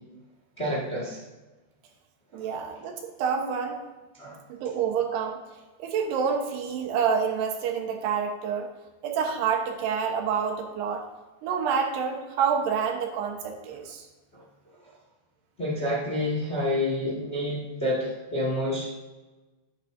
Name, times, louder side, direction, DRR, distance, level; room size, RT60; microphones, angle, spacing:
voice 1, 0.6-1.2 2.3-2.4 4.2-4.4 14.3-14.4 15.6-18.9, left 1 dB, 25° left, -5 dB, 1.5 m, -28 dB
voice 2, 2.3-3.8 4.5-5.4 5.8-8.7 9.0-11.1 11.4-14.0, right 6 dB, 75° right, 2 dB, 3.2 m, -28 dB
12.0 x 10.5 x 2.7 m, 1.2 s
omnidirectional pair, 4.9 m